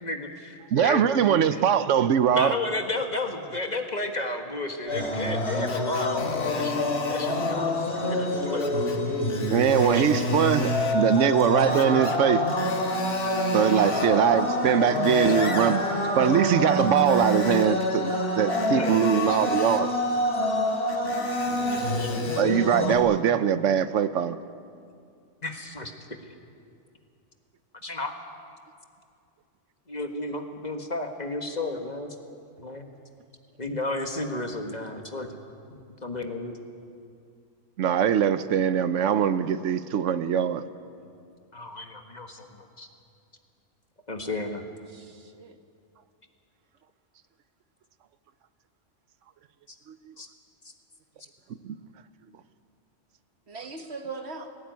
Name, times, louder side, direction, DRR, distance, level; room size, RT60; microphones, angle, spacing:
voice 1, 0.0-1.6 2.3-8.9 9.8-10.5 13.7-14.4 18.7-19.4 21.6-22.3 25.4-25.9 27.8-28.1 29.9-32.2 32.6-32.9 33.6-35.4 35.7-36.6 41.5-42.9 44.1-44.6 50.2-50.3, left 2 dB, 35° left, 4 dB, 1.7 m, -33 dB
voice 2, 0.7-2.6 9.5-12.5 13.5-15.8 16.1-19.9 22.4-24.4 37.8-40.7 51.6-51.8, right 8 dB, 90° right, 13 dB, 1.1 m, -22 dB
sound 1, 4.9-23.0, left 1 dB, 65° left, 3.1 m, -27 dB
Screech, 5.7-7.6 8.6-9.0 9.3-11.0 11.7-12.2 12.5-14.2 14.7-15.8 16.9-17.9 18.5-19.9 20.9-22.5 23.1-23.2, left 5 dB, 85° left, 1.8 m, -38 dB
sound 2, 7.6-8.4 8.9-10.0 10.3-12.2 12.6-12.7 12.9-13.6 13.8-13.9 14.2-15.2 15.7-16.2 17.1-17.6, left 1 dB, 25° right, 8.0 m, -48 dB
voice 3, 44.9-45.6 53.5-54.5, right 4 dB, 60° right, 5 dB, 1.7 m, -40 dB
19.0 x 18.0 x 9.4 m, 2.4 s
omnidirectional pair, 1.2 m